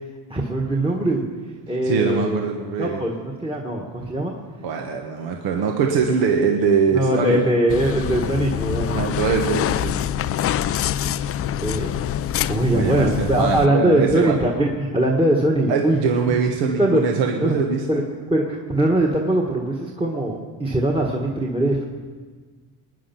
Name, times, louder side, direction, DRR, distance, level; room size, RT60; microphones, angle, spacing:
voice 1, 0.3-1.2 1.7-2.4 2.8-4.3 5.6-5.7 6.9-9.0 11.6-11.9 12.5-16.0 16.8-17.0 17.4-17.6 17.9-18.0 18.3-21.9, right 1 dB, 10° right, -2 dB, 1.6 m, -21 dB
voice 2, 1.8-3.0 4.6-7.4 8.8-10.0 12.7-14.4 15.7-17.9, right 5 dB, 70° right, 2 dB, 1.6 m, -22 dB
sound 1, 7.7-13.7, left 10 dB, 35° left, 0.4 m, -25 dB
20.0 x 10.0 x 6.0 m, 1.5 s
cardioid pair, 110°, 45 cm